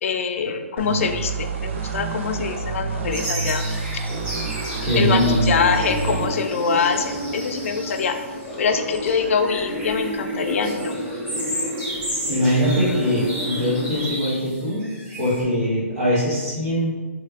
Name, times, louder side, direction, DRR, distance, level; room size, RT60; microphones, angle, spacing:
voice 1, 0.0-3.7 5.0-8.2 8.6-10.9, left 5 dB, 60° left, 7 dB, 0.4 m, -24 dB
sound 1, 0.8-6.3, right 5 dB, 55° right, 0.5 m, -28 dB
sound 2, 3.1-15.4, equal, 15° right, 1.2 m, -34 dB
sound 3, 4.1-14.1, left 1 dB, 10° left, 0.6 m, -31 dB
voice 2, 4.8-5.5 12.3-14.9 15.2-17.0, equal, 75° right, -11 dB, 1.5 m, -21 dB
3.4 x 3.2 x 2.4 m, 1.3 s
hypercardioid pair, 140°, 8 cm